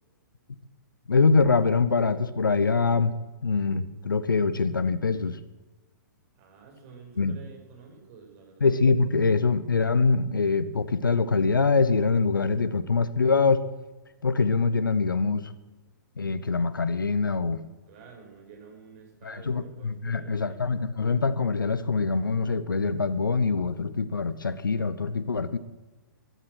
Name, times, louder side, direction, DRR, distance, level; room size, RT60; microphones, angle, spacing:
voice 1, 1.1-3.1 3.4-5.4 7.2-7.4 8.6-13.6 14.2-15.5 16.2-17.6 19.2-25.6, left 4 dB, 85° left, 14 dB, 1.0 m, -24 dB
voice 2, 6.4-8.7 17.9-20.7, right 5 dB, 45° right, 2 dB, 5.6 m, -49 dB
16.0 x 12.0 x 6.3 m, 1.2 s
hypercardioid pair, 125°, 11 cm